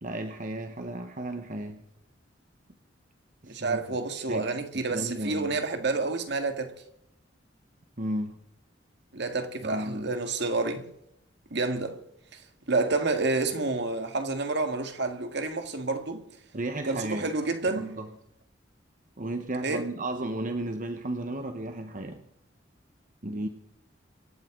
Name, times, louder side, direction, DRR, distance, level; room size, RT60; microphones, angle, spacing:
voice 1, 0.0-1.8 3.4-3.8 4.3-5.5 8.0-8.4 9.6-10.1 16.5-17.3 17.7-18.1 19.2-22.2 23.2-23.5, right 1 dB, 45° right, 1.1 m, -34 dB
voice 2, 3.5-6.8 9.1-10.9 11.5-12.0 12.3-12.4 12.7-16.3 16.8-18.0 19.6-19.9, right 3 dB, 65° right, 1.9 m, -29 dB
25.5 x 12.5 x 3.8 m
head